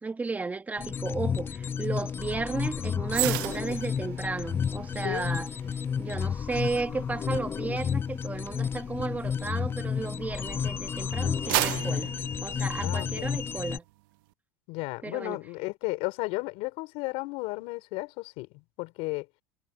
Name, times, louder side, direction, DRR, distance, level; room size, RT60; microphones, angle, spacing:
voice 1, 0.0-5.5 6.0-12.1 12.4-13.8 15.0-15.4, right 3 dB, 15° right, 1.5 m, -33 dB
sound 1, 0.8-13.8, left 7 dB, 20° left, 0.3 m, -31 dB
sound 2, 3.1-10.5 11.0-13.3 13.7-13.9, right 22 dB, 75° right, 0.8 m, -36 dB
voice 2, 12.8-13.4 14.7-19.3, left 24 dB, 65° left, 4.7 m, -34 dB
supercardioid pair, 120°, 11 cm